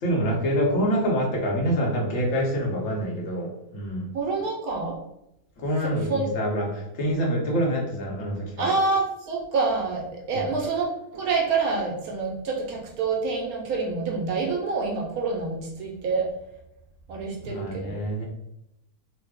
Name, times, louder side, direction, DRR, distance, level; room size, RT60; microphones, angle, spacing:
voice 1, 0.0-4.1 5.6-8.8 10.3-10.5 17.4-18.2, equal, 60° left, -2 dB, 1.2 m, -26 dB
voice 2, 4.1-5.0 5.8-6.3 8.6-16.3 17.1-18.0, right 4 dB, 75° right, -1 dB, 1.1 m, -27 dB
3.1 x 2.1 x 3.5 m, 0.83 s
omnidirectional pair, 1.6 m